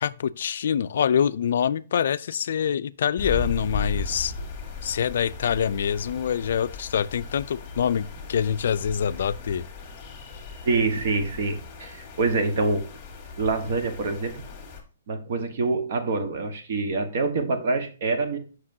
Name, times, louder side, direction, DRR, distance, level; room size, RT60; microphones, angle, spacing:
voice 1, 0.0-4.3 4.8-9.6, left 8 dB, 60° left, 0.3 m, -25 dB
sound 1, 3.2-14.8, left 4 dB, 20° left, 1.8 m, -37 dB
voice 2, 10.6-12.9 13.4-14.4 15.1-18.4, right 3 dB, 50° right, 1.2 m, -26 dB
7.4 x 5.9 x 2.7 m
hypercardioid pair, 165°, 0 cm